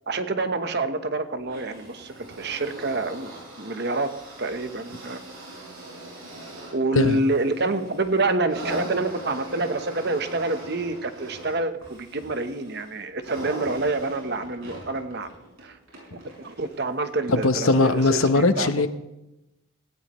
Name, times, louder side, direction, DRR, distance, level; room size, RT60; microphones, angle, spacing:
voice 1, 0.1-3.3 3.6-4.1 4.4-5.2 6.7-15.3 15.6-15.8 16.1-18.7, right 2 dB, 50° right, 9 dB, 1.1 m, -27 dB
sound 1, 1.4-16.9 17.7-17.8, right 1 dB, 75° right, 6.7 m, -41 dB
voice 2, 17.3-18.9, left 3 dB, 80° left, 10 dB, 1.0 m, -20 dB
17.0 x 16.5 x 3.2 m, 0.93 s
head